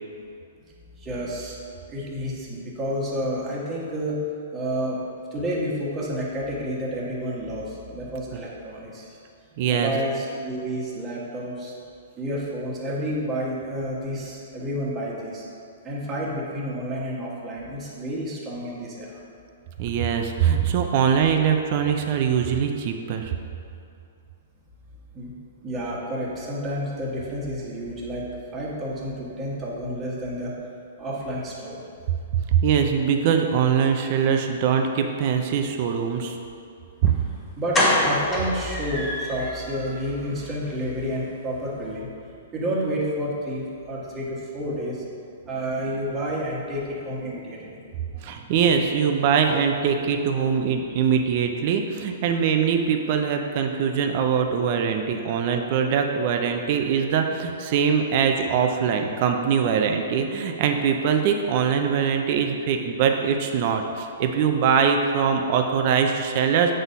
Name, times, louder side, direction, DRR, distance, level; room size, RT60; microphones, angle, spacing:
voice 1, 1.0-1.6 1.9-4.2 4.5-5.0 5.3-9.2 9.7-11.7 12.2-15.4 15.8-19.2 25.1-25.3 25.6-28.3 28.5-30.5 31.0-31.8 37.6-42.1 42.5-45.0 45.5-48.5, equal, 20° right, -5 dB, 1.4 m, -30 dB
voice 2, 9.6-9.9 19.8-23.3 32.3-36.4 37.0-37.1 48.2-66.7, right 7 dB, 45° right, 4 dB, 0.6 m, -22 dB
sound 1, 37.1-37.2 37.7-39.5 39.9-40.0 40.3-40.5 40.7-40.8, left 1 dB, 15° left, 1.8 m, -24 dB
7.7 x 4.1 x 5.4 m, 2.5 s
hypercardioid pair, 150°, 0 cm